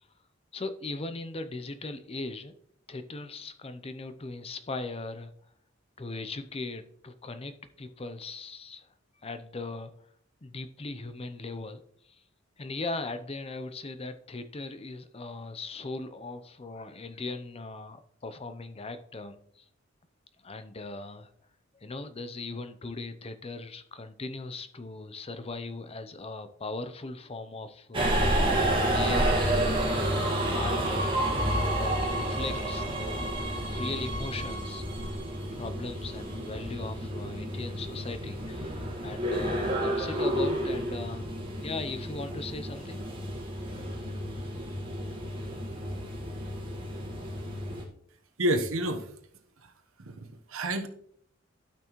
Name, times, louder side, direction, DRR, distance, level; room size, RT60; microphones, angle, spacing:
voice 1, 0.5-2.5 2.9-5.3 6.0-8.8 9.2-9.9 10.4-11.8 12.6-19.6 20.4-21.3 21.7-28.5 28.9-30.0 30.5-31.1 31.7-35.2 35.5-38.8 39.0-41.3 41.6-43.0, left 3 dB, 30° left, 11 dB, 0.6 m, -39 dB
Subway metro underground, 27.9-47.8, right 1 dB, 25° right, 1.9 m, -30 dB
voice 2, 48.4-49.1 49.6-49.7 50.0-50.9, right 1 dB, 90° right, 6 dB, 1.1 m, -29 dB
12.0 x 6.0 x 3.1 m, 0.66 s
head